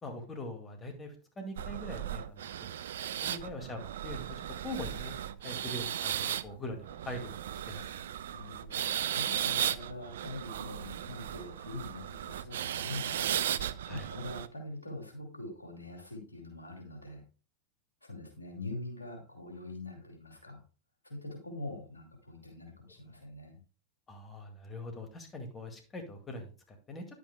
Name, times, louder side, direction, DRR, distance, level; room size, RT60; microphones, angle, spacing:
voice 1, 0.0-2.7 3.0-8.1 13.8-14.1 24.1-27.1, left 1 dB, 20° left, 4 dB, 2.0 m, -43 dB
sound 1, 1.6-14.5, right 10 dB, 70° right, 0.4 m, -36 dB
voice 2, 8.3-13.4 13.9-17.2 18.0-20.6 21.0-23.6, left 2 dB, 90° left, 2 dB, 2.6 m, -44 dB
10.0 x 8.3 x 2.2 m, 0.35 s
figure-of-eight pair, 90°, 0 cm